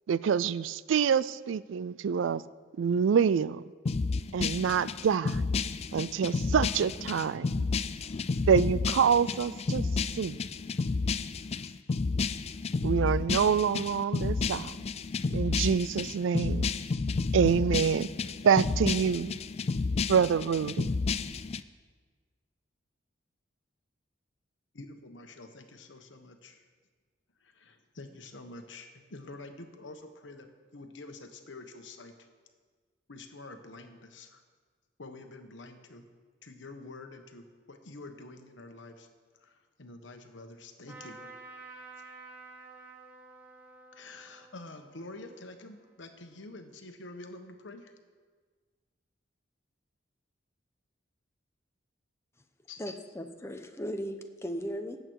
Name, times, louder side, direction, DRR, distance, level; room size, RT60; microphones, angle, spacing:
voice 1, 0.1-2.4 2.8-3.6 4.3-5.4 5.9-7.6 8.5-9.9 10.1-10.4 12.8-14.8 15.3-16.7 17.3-18.1 18.4-19.3 20.1-20.9, right 7 dB, 85° right, 0.4 m, -26 dB
sound 1, 3.8-21.6, left 4 dB, 35° left, 0.4 m, -31 dB
voice 2, 24.7-26.6 27.4-32.2 33.1-34.4 35.0-36.1 36.4-39.1 39.4-41.3 43.9-47.9 52.7-52.8, left 2 dB, 75° left, 1.2 m, -47 dB
Trumpet, 40.9-46.4, right 3 dB, 10° right, 2.5 m, -51 dB
voice 3, 52.8-55.0, equal, 15° left, 0.8 m, -37 dB
18.5 x 8.0 x 4.7 m
head